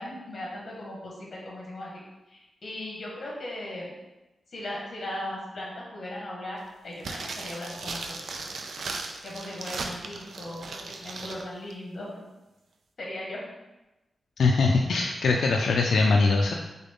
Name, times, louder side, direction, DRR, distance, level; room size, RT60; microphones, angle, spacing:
voice 1, 0.0-1.9 2.3-3.9 4.5-8.2 9.2-12.3 13.0-13.4, left 1 dB, 45° left, -4 dB, 1.5 m, -38 dB
sound 1, 7.0-11.4 11.7-11.8, right 3 dB, 75° right, 0.4 m, -37 dB
voice 2, 14.4-16.5, left 3 dB, 85° left, 1 dB, 0.4 m, -22 dB
3.8 x 3.7 x 3.6 m, 1.0 s
wide cardioid pair, 165°, 0 cm